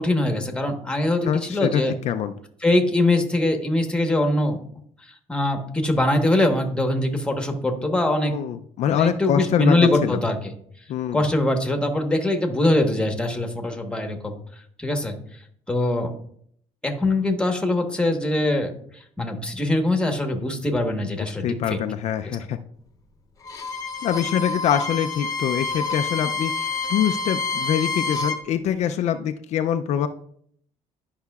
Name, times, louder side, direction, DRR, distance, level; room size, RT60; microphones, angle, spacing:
voice 1, 0.0-1.9 2.6-4.6 5.3-8.3 8.9-10.4 11.1-14.3 14.8-15.1 15.7-16.1 16.8-21.8 22.2-22.4, left 1 dB, 10° left, 4 dB, 1.2 m, -22 dB
voice 2, 1.3-2.3 8.2-10.2 10.9-11.3 21.4-22.6 24.0-30.1, left 9 dB, 60° left, 8 dB, 0.4 m, -24 dB
Bowed string instrument, 23.4-28.4, left 4 dB, 25° left, 1.0 m, -28 dB
11.5 x 5.6 x 2.3 m, 0.64 s
cardioid pair, 110°, 13 cm